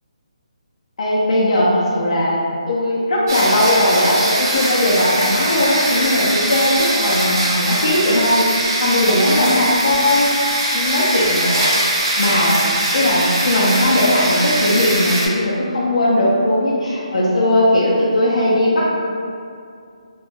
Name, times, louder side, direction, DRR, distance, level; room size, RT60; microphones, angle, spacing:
voice 1, 1.0-2.4 2.7-10.4 10.7-12.6 12.9-18.9, left 1 dB, 65° left, -7 dB, 0.4 m, -18 dB
sound 1, 3.3-15.3, right 1 dB, 30° right, 0.4 m, -21 dB
2.2 x 2.0 x 3.2 m, 2.4 s
hypercardioid pair, 165°, 4 cm